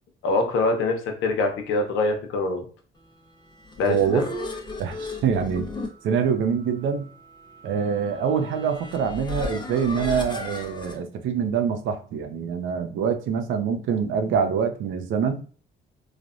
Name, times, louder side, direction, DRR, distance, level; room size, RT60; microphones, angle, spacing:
voice 1, 0.2-2.6 3.8-4.3, left 3 dB, 85° left, 4 dB, 0.7 m, -24 dB
sound 1, 3.4-11.0, left 2 dB, 25° left, 0.6 m, -36 dB
voice 2, 3.8-4.3 4.8-5.7 6.0-7.1 7.6-15.4, right 7 dB, 75° right, 7 dB, 0.5 m, -25 dB
3.2 x 2.1 x 2.4 m, 0.41 s
cardioid pair, 90°, 20 cm